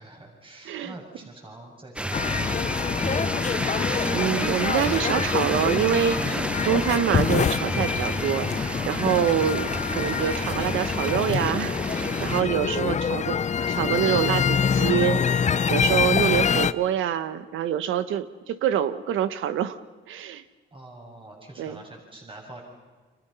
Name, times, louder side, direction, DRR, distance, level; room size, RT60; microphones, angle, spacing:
voice 1, 0.0-3.7 20.7-22.6, right 2 dB, 25° right, 1 dB, 6.7 m, -46 dB
sound 1, 2.0-12.4, right 1 dB, 5° right, 0.9 m, -31 dB
sound 2, 2.1-16.7, left 7 dB, 35° left, 0.8 m, -25 dB
voice 2, 4.1-19.8 20.1-20.4 21.6-21.8, right 10 dB, 80° right, 13 dB, 1.3 m, -26 dB
30.0 x 27.0 x 5.7 m, 1.3 s
cardioid pair, 90°, 20 cm